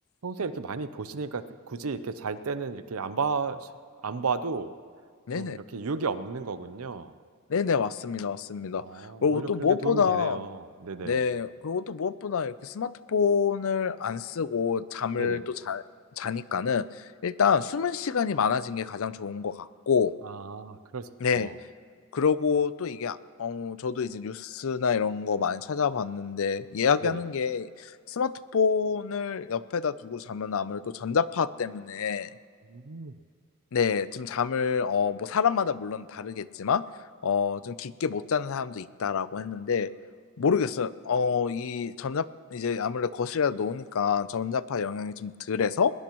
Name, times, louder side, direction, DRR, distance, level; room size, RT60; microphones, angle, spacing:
voice 1, 0.2-3.7 4.0-4.7 5.3-7.1 8.8-11.3 15.2-15.4 20.2-21.1 21.3-21.5 27.0-27.2 32.7-33.1, right 4 dB, 70° right, 13 dB, 0.7 m, -33 dB
voice 2, 5.3-5.6 7.5-10.4 11.0-15.8 16.2-20.1 21.2-21.5 22.1-32.3 33.7-36.8 37.2-39.9 40.4-46.0, left 6 dB, 65° left, 16 dB, 0.5 m, -27 dB
20.5 x 20.0 x 3.1 m, 2.1 s
head